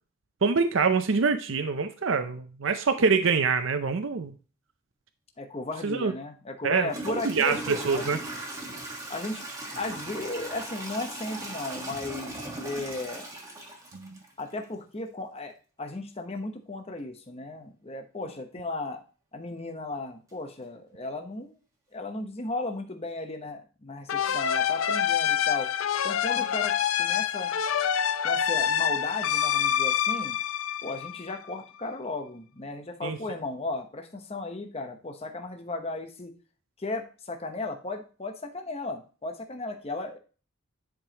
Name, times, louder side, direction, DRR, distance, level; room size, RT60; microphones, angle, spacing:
voice 1, 0.4-4.3 5.8-6.1 6.6-6.9 7.2-8.2 13.9-14.2 33.0-33.2, right 5 dB, 60° right, 8 dB, 0.6 m, -25 dB
voice 2, 5.4-8.1 9.1-9.5 9.7-13.3 14.4-19.0 19.3-21.6 21.9-25.7 26.0-27.5 28.2-30.4 30.8-36.3 36.8-40.2, left 2 dB, 30° left, 5 dB, 0.9 m, -35 dB
Toilet flush / Trickle dribble, 6.1-6.2 6.8-14.6, right 2 dB, 15° right, 1.5 m, -38 dB
sound 1, 24.1-31.5, left 9 dB, 70° left, 0.5 m, -26 dB
10.5 x 5.1 x 2.9 m, 0.36 s
head